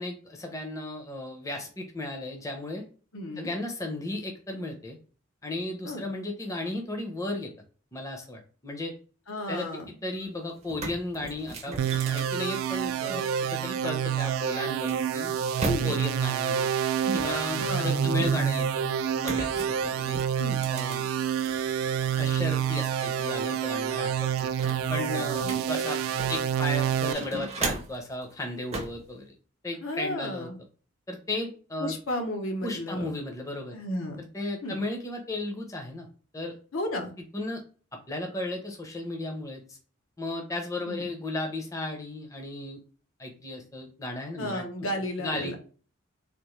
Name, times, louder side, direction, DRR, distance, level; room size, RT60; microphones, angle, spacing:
voice 1, 0.0-2.9 3.4-5.0 5.4-7.5 7.9-8.9 9.5-11.8 12.0-15.3 15.6-16.7 17.1-20.2 20.7-21.1 22.1-24.5 24.9-26.0 26.3-29.3 29.6-30.5 31.1-31.9 32.6-33.8 34.2-36.1 36.3-36.5 37.3-37.6 38.1-39.8 40.2-42.8 43.2-44.6 45.2-45.6, left 2 dB, 15° left, 2 dB, 0.6 m, -35 dB
voice 2, 3.1-3.5 5.8-6.0 9.3-9.9 15.6-15.9 17.5-18.1 20.4-20.6 25.4-25.7 29.8-30.6 31.8-33.1 33.7-34.2 34.6-34.8 36.7-37.1 40.8-41.0 44.4-45.6, left 1 dB, 80° left, 3 dB, 0.8 m, -33 dB
sound 1, 10.2-10.3 10.6-13.3 14.2-16.2 17.0-18.6 19.2-21.6 22.0-23.1 23.4-23.5 23.9-26.5 26.9-28.1 28.7-29.0, right 2 dB, 30° right, 0.5 m, -37 dB
sound 2, 11.8-27.1, right 8 dB, 90° right, 0.3 m, -28 dB
3.5 x 2.4 x 3.1 m, 0.38 s
head